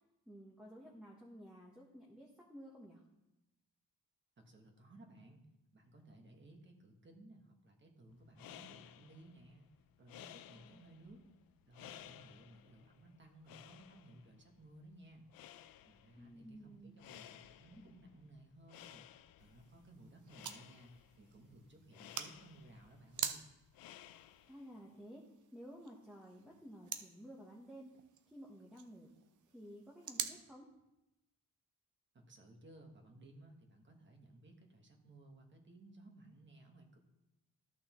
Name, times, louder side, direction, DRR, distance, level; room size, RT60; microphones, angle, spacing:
voice 1, 0.3-3.0 10.5-10.8 16.2-17.0 24.5-25.2 25.5-27.9 28.3-29.1 29.5-30.7, equal, 5° right, -3 dB, 0.9 m, -54 dB
voice 2, 4.4-5.4 5.7-9.7 10.0-11.2 11.7-15.3 15.8-19.0 19.4-23.5 32.1-37.0, right 1 dB, 35° right, 3 dB, 1.3 m, -59 dB
sound 1, 8.2-24.8, left 12 dB, 90° left, 0.5 m, -58 dB
sound 2, 19.4-30.4, right 8 dB, 60° right, 0.6 m, -48 dB
13.5 x 6.3 x 3.0 m, 0.94 s
wide cardioid pair, 150°, 34 cm